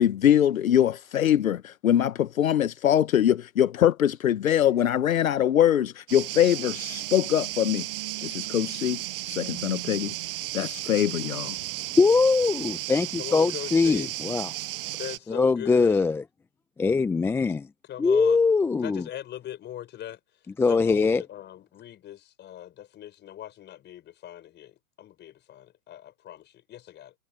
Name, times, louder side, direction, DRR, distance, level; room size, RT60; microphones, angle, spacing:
voice 1, 0.0-7.9 8.2-10.1 10.5-11.6, left 10 dB, 70° left, 1.2 m, -23 dB
sound 1, 6.1-15.2, right 17 dB, 40° right, 0.6 m, -34 dB
voice 2, 12.0-14.5 15.3-16.2 16.8-17.6 18.0-19.0 20.6-21.2, left 4 dB, 5° left, 0.6 m, -22 dB
voice 3, 13.2-14.1 15.0-16.0 17.9-18.4 18.8-20.2 20.6-27.1, left 12 dB, 25° left, 6.0 m, -40 dB
hypercardioid pair, 120°, 43 cm